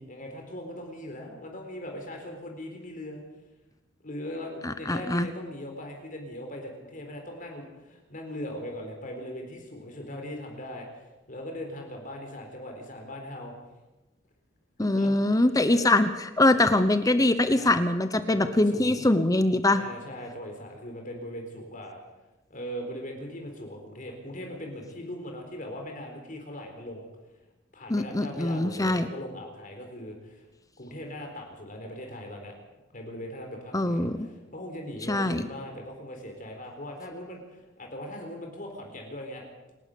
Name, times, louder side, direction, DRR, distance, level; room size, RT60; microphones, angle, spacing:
voice 1, 0.0-3.2 4.0-13.5 14.8-15.5 15.7-15.8 17.5-17.7 18.3-19.0 19.7-22.0 22.5-27.1 27.7-30.4 30.8-32.5 32.9-39.5, left 1 dB, 45° left, 2 dB, 4.1 m, -40 dB
voice 2, 4.6-5.3 14.8-16.1 16.4-19.8 27.9-29.1 33.7-34.3 35.1-35.4, left 2 dB, 20° left, 10 dB, 0.9 m, -23 dB
27.5 x 12.0 x 8.5 m, 1.1 s
head